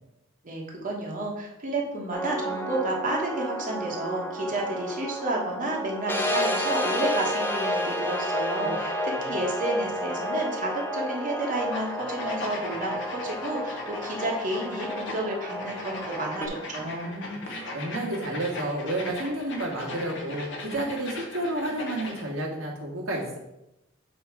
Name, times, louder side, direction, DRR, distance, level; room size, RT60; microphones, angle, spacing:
voice 1, 0.4-8.9 9.3-17.2, right 1 dB, 40° right, -1 dB, 1.3 m, -31 dB
sound 1, 2.1-16.5, equal, 10° left, 0.7 m, -31 dB
sound 2, 11.6-22.3, left 2 dB, 65° left, 1.3 m, -39 dB
voice 2, 16.8-23.4, right 1 dB, 70° right, -2 dB, 1.8 m, -31 dB
7.8 x 3.2 x 4.7 m, 0.90 s
head